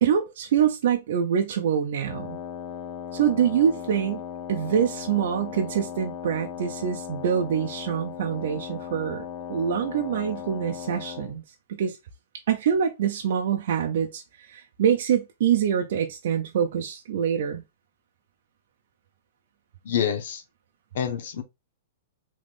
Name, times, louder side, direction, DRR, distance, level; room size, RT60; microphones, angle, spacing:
voice 1, 0.0-2.4 3.1-4.2 4.5-11.4 11.7-12.0 12.5-17.6, right 8 dB, 60° right, 0.5 m, -25 dB
Wind instrument woodwind instrument, 2.0-11.4, left 9 dB, 30° left, 0.5 m, -37 dB
voice 2, 19.8-20.4 20.9-21.4, left 8 dB, 60° left, 0.8 m, -27 dB
3.4 x 3.1 x 2.4 m
hypercardioid pair, 165°, 0 cm